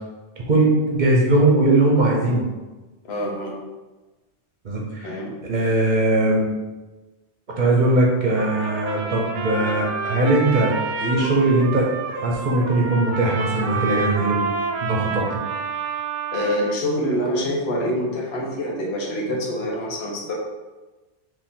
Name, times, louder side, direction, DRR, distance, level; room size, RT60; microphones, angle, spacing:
voice 1, 0.5-2.5 4.6-5.2 5.4-6.5 7.6-11.9 12.2-14.4 14.8-15.4, right 2 dB, 45° right, -2 dB, 0.8 m, -20 dB
voice 2, 3.1-3.5 5.0-5.4 16.3-20.3, equal, 65° left, -1 dB, 1.0 m, -25 dB
Trumpet, 8.4-16.8, right 5 dB, 85° right, 0.9 m, -29 dB
4.4 x 2.7 x 3.6 m, 1.2 s
omnidirectional pair, 1.2 m